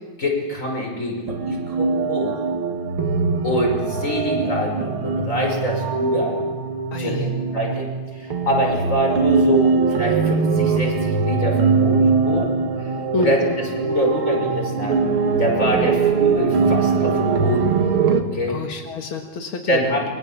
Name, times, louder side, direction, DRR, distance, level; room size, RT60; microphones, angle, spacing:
voice 1, 0.2-2.4 3.4-6.4 7.0-12.5 12.8-15.0 15.4-17.8 18.3-18.6 19.7-20.1, equal, 35° left, 0 dB, 6.3 m, -25 dB
sound 1, 1.3-18.2, right 5 dB, 90° right, 2.6 m, -21 dB
voice 2, 6.9-7.3 13.1-13.6 18.5-19.8, left 3 dB, 80° left, 4 dB, 2.5 m, -27 dB
29.0 x 23.0 x 7.4 m, 1.4 s
omnidirectional pair, 2.2 m